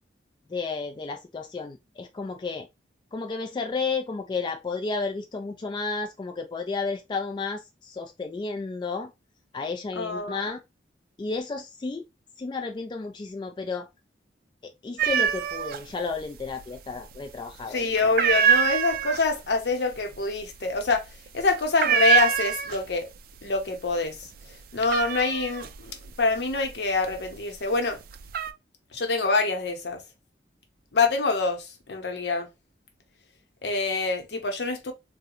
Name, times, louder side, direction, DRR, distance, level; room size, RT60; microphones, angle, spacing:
voice 1, 0.5-2.7 3.1-9.1 9.5-10.6 11.2-12.0 12.4-13.9 14.6-17.8, left 4 dB, 25° left, 0.3 m, -32 dB
voice 2, 10.0-10.5 17.7-21.1 21.3-23.1 23.4-24.2 24.7-28.0 28.9-30.0 30.9-32.5 33.6-34.9, left 3 dB, 70° left, 0.7 m, -26 dB
sound 1, 15.0-15.8 16.1-16.9 17.2-17.6 18.0-23.1 23.4-23.9 24.3-27.4 27.9-28.5, right 7 dB, 55° right, 0.3 m, -25 dB
3.6 x 2.1 x 2.8 m
head